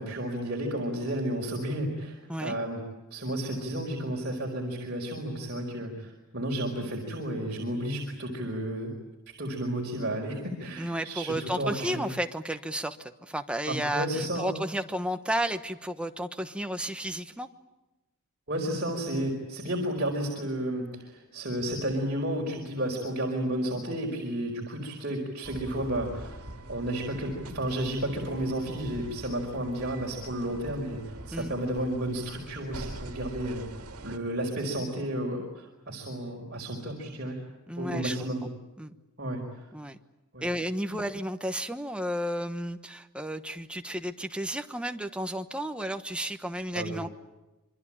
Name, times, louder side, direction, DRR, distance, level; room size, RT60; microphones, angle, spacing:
voice 1, 0.0-2.8 3.1-8.9 9.4-12.1 13.7-14.5 18.5-26.4 26.7-31.0 31.3-33.6 34.0-37.4 37.8-38.4 39.2-39.4 40.3-40.5 40.9-41.0 46.7-47.0, right 1 dB, 50° right, -1 dB, 4.8 m, -32 dB
voice 2, 10.8-17.5 31.3-31.5 37.7-38.2 38.4-38.5 38.8-38.9 39.7-40.0 40.4-47.1, equal, 5° right, 7 dB, 1.2 m, -32 dB
sound 1, 25.4-34.2, right 1 dB, 80° right, 2.6 m, -44 dB
27.0 x 24.0 x 8.9 m, 1.1 s
head